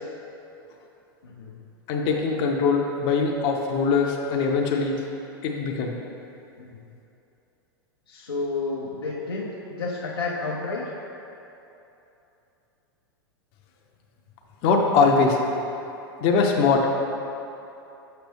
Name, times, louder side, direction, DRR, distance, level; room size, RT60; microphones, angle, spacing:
voice 1, 1.2-1.6 6.6-6.8 8.1-10.9, left 3 dB, 90° left, -6 dB, 0.8 m, -31 dB
voice 2, 1.9-5.0 5.4-5.9 14.6-15.4 16.2-16.9, left 4 dB, 45° left, 1 dB, 0.7 m, -22 dB
6.7 x 5.8 x 3.4 m, 2.9 s
hypercardioid pair, 95°, 12 cm